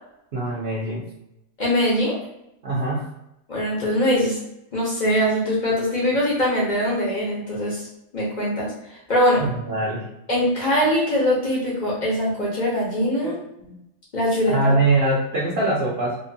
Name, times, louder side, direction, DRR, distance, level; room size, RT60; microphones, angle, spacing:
voice 1, 0.3-1.1 2.6-3.1 9.4-10.1 13.6-13.8 14.5-16.2, right 2 dB, 60° right, -5 dB, 0.7 m, -23 dB
voice 2, 1.6-2.2 3.5-4.4 4.7-7.8 8.1-8.7 9.1-9.4 10.3-13.4 14.1-14.7, equal, 55° left, -5 dB, 0.5 m, -22 dB
2.8 x 2.2 x 2.6 m, 0.84 s
omnidirectional pair, 1.7 m